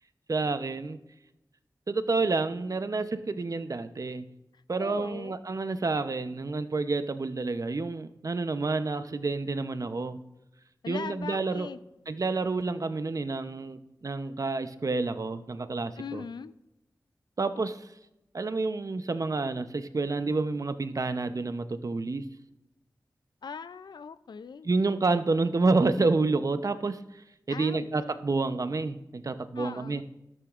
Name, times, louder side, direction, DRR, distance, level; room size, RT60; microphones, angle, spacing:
voice 1, 0.3-1.0 1.9-4.2 4.7-10.2 10.9-11.7 12.1-16.3 17.4-17.9 18.3-22.2 24.6-27.2 27.5-30.0, right 3 dB, 50° right, 11 dB, 0.7 m, -29 dB
voice 2, 4.8-5.4 10.8-11.8 16.0-16.5 23.4-24.7 27.5-27.9 29.6-30.0, left 6 dB, 85° left, 14 dB, 0.4 m, -40 dB
13.5 x 11.5 x 2.5 m, 0.91 s
wide cardioid pair, 60°, 7 cm